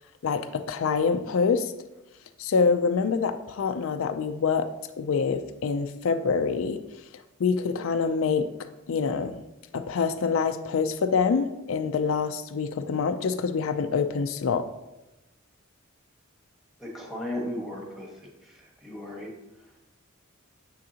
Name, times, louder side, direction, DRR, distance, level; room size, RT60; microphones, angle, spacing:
voice 1, 0.2-1.7 2.4-4.7 5.0-6.8 7.4-8.5 8.9-9.4 9.7-14.7, left 5 dB, 75° left, 9 dB, 0.4 m, -26 dB
voice 2, 16.8-18.1 18.8-19.3, left 1 dB, ahead, -1 dB, 1.3 m, -35 dB
7.5 x 6.2 x 2.8 m, 0.98 s
head